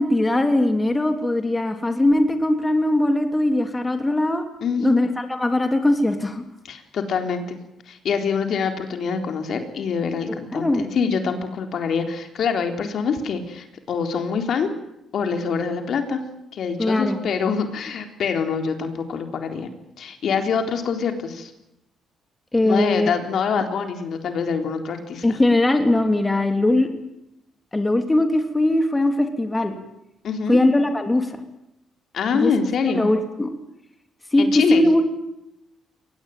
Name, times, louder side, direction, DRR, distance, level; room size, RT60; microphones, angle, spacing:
voice 1, 0.0-4.4 4.8-6.5 10.3-10.9 16.8-17.2 22.5-23.1 23.5-23.7 25.2-26.9 27.7-29.7 30.5-31.4 32.3-32.5 32.8-33.5 34.3-35.1, left 1 dB, 15° left, 6 dB, 3.2 m, -20 dB
voice 2, 4.6-5.0 6.6-7.6 7.9-14.7 15.1-16.2 16.5-19.7 20.0-21.5 22.6-25.2 30.2-30.6 32.1-33.0 34.4-34.8, left 6 dB, 65° left, 6 dB, 3.8 m, -25 dB
23.0 x 19.5 x 9.2 m, 0.84 s
cardioid pair, 90°, 0 cm